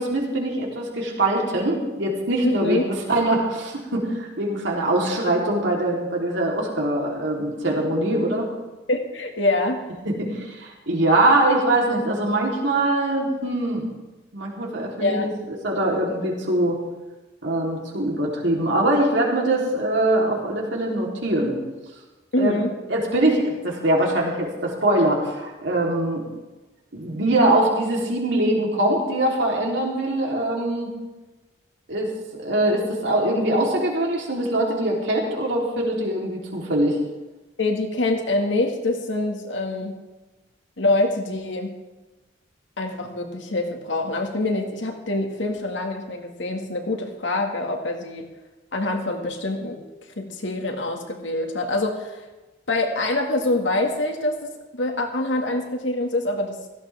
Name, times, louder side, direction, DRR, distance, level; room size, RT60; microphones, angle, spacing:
voice 1, 0.0-8.5 10.1-13.8 14.3-15.3 15.6-16.8 17.4-21.6 22.4-22.6 22.9-26.3 26.9-30.9 31.9-37.0, right 1 dB, 75° right, -2 dB, 3.6 m, -23 dB
voice 2, 2.4-2.8 8.9-9.8 15.0-15.2 22.3-22.7 37.6-39.9 40.8-41.7 42.8-48.3 48.7-49.8 50.2-52.2 52.7-56.6, left 2 dB, 80° left, 3 dB, 2.0 m, -25 dB
16.5 x 15.0 x 3.6 m, 1.1 s
head